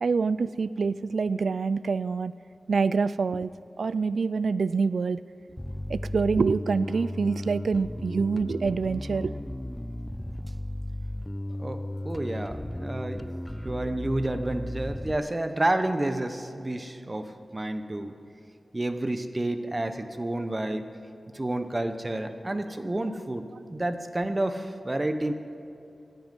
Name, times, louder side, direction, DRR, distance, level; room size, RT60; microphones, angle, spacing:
voice 1, 0.0-2.3 2.7-3.5 3.8-5.2 5.9-9.3, right 4 dB, 85° right, 17 dB, 0.3 m, -26 dB
Bass guitar, 5.6-15.2, left 1 dB, 10° left, 0.4 m, -35 dB
voice 2, 11.6-13.3 13.6-18.1 18.7-20.9 21.3-25.3, right 1 dB, 25° right, 8 dB, 0.9 m, -30 dB
17.0 x 11.0 x 5.4 m, 2.6 s
wide cardioid pair, 95°, 0 cm